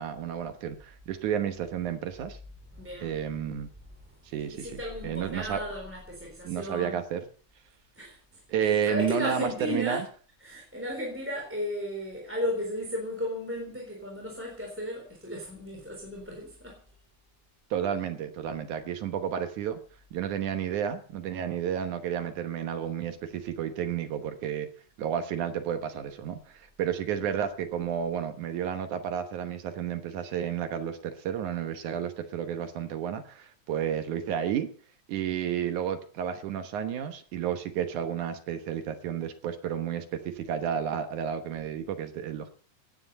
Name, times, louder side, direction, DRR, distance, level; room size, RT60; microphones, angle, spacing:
voice 1, 0.0-2.4 3.0-3.7 4.3-5.6 6.4-7.2 8.5-10.1 17.7-19.8 20.1-24.7 25.0-34.7 35.1-42.5, right 9 dB, 70° right, 2.5 m, -31 dB
voice 2, 2.7-3.2 4.5-7.0 8.0-8.2 8.6-10.1 10.4-16.8, left 1 dB, 5° right, 3.5 m, -35 dB
17.5 x 9.8 x 5.4 m
omnidirectional pair, 3.9 m